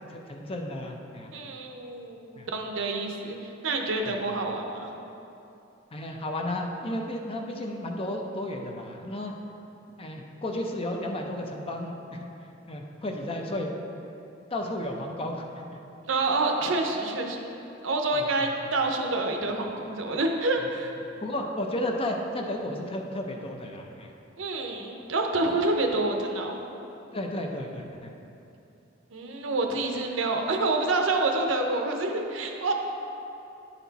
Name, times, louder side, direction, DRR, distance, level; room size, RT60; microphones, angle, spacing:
voice 1, 0.1-1.3 2.4-2.5 4.1-4.2 5.9-9.3 10.0-12.3 12.7-13.7 14.5-15.7 18.1-18.5 21.2-24.1 27.1-28.1, left 1 dB, 30° left, 2 dB, 0.6 m, -33 dB
voice 2, 1.3-4.9 16.1-17.4 17.8-20.9 24.4-26.6 29.1-32.7, right 2 dB, 70° right, 3 dB, 0.7 m, -27 dB
10.0 x 4.3 x 4.0 m, 2.8 s
head